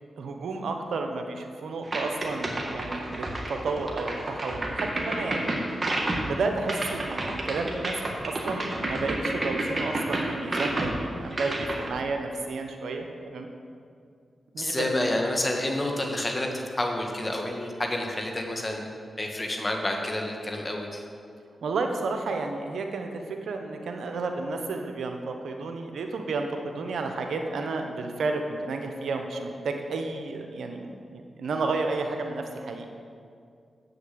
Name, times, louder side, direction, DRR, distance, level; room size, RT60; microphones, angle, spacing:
voice 1, 0.2-5.5 6.2-13.5 14.5-14.8 21.6-32.8, right 3 dB, 80° right, 4 dB, 0.8 m, -31 dB
sound 1, 1.9-11.9, right 1 dB, 40° right, 1.9 m, -30 dB
voice 2, 14.6-18.9 19.2-21.0, left 1 dB, 30° left, 1 dB, 1.9 m, -29 dB
7.7 x 6.9 x 7.8 m, 2.3 s
supercardioid pair, 45°, 0 cm